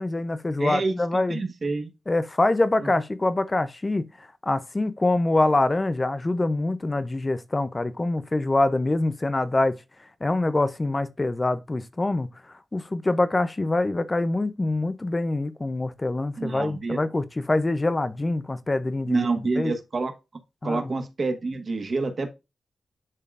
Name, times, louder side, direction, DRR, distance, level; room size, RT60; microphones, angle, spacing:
voice 1, 0.0-1.4 2.1-9.8 10.2-12.3 12.7-19.3 19.6-19.7 20.6-20.9, left 2 dB, 20° left, 0.5 m, -25 dB
voice 2, 0.6-1.9 16.4-17.0 19.1-20.1 20.6-22.3, right 3 dB, 40° right, 1.3 m, -27 dB
10.5 x 3.7 x 2.4 m
wide cardioid pair, 170°, 0 cm